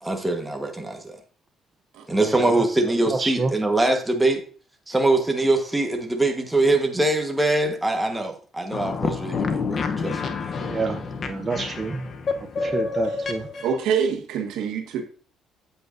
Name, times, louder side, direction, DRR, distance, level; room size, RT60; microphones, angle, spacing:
voice 1, 0.0-1.1 2.1-4.4 4.9-10.2 11.5-11.6, right 2 dB, 10° right, 1.3 m, -23 dB
voice 2, 2.1-2.7 3.1-3.5 10.6-12.1 12.6-13.5, right 4 dB, 25° right, 0.6 m, -28 dB
sound 1, 8.7-13.8, left 4 dB, 40° left, 0.8 m, -28 dB
voice 3, 13.6-15.0, right 7 dB, 85° right, 1.5 m, -26 dB
8.0 x 7.9 x 2.6 m
cardioid pair, 120°, 0 cm